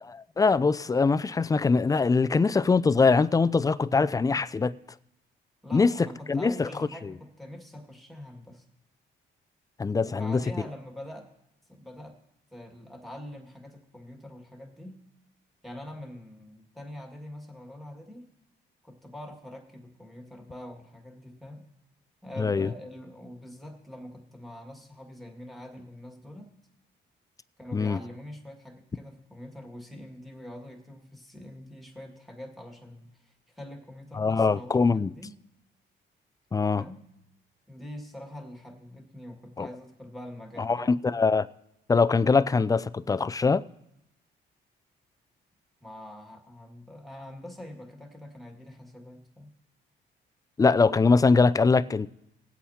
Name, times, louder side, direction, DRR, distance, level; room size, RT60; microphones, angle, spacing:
voice 1, 0.4-4.7 5.7-6.7 9.8-10.4 22.4-22.7 27.7-28.0 34.1-35.1 36.5-36.8 39.6-39.7 40.6-41.5 41.9-43.6 50.6-52.1, left 4 dB, 20° left, 0.3 m, -22 dB
voice 2, 5.6-8.6 10.0-11.3 11.7-12.2 12.5-15.0 15.6-18.3 18.8-21.6 22.2-26.5 27.6-35.4 36.8-37.0 37.7-40.9 45.8-49.5, left 1 dB, ahead, 2.0 m, -44 dB
20.0 x 8.2 x 2.8 m
cardioid pair, 90°, 20 cm